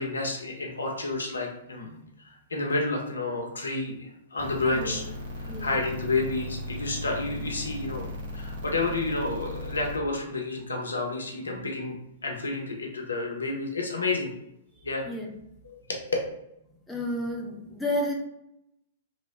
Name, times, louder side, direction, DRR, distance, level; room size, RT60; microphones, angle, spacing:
voice 1, 0.0-2.0 2.2-5.0 5.4-12.0 12.2-14.3 14.8-15.1 15.7-16.0, left 2 dB, 75° left, 0 dB, 0.7 m, -30 dB
sound 1, 4.4-10.0, left 1 dB, 50° right, 0.9 m, -37 dB
voice 2, 4.7-5.0 5.5-5.7 11.5-11.7 15.1-15.3 16.9-18.1, left 1 dB, 5° left, 0 dB, 0.5 m, -31 dB
3.0 x 2.0 x 2.9 m, 0.82 s
figure-of-eight pair, 110°, 0 cm